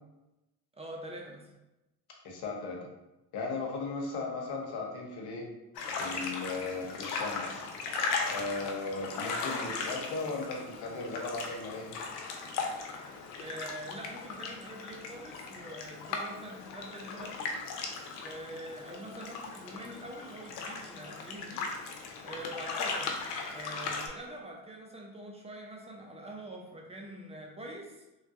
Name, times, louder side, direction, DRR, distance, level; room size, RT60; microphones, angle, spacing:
voice 1, 0.7-1.5 13.4-17.6 18.2-21.7 22.2-23.1 23.5-28.0, right 1 dB, 15° right, 0 dB, 0.4 m, -44 dB
voice 2, 2.2-2.8 3.3-5.4 6.0-7.6 8.3-12.0, left 3 dB, 55° left, -1 dB, 1.0 m, -36 dB
sound 1, 5.7-24.1, left 4 dB, 80° left, 0.6 m, -38 dB
3.2 x 2.2 x 2.7 m, 0.98 s
hypercardioid pair, 70°, 47 cm